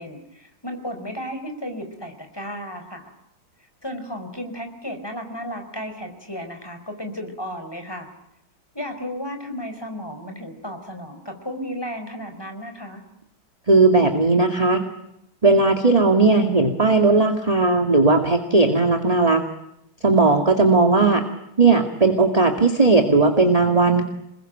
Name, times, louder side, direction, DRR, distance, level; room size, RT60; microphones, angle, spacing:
voice 1, 0.0-3.1 3.8-8.1 8.7-13.0, equal, 10° left, 5 dB, 4.4 m, -34 dB
voice 2, 13.7-14.8 15.4-19.4 20.0-21.2 21.6-24.0, right 3 dB, 20° right, 4 dB, 2.2 m, -17 dB
28.0 x 21.0 x 9.1 m, 0.81 s
omnidirectional pair, 2.2 m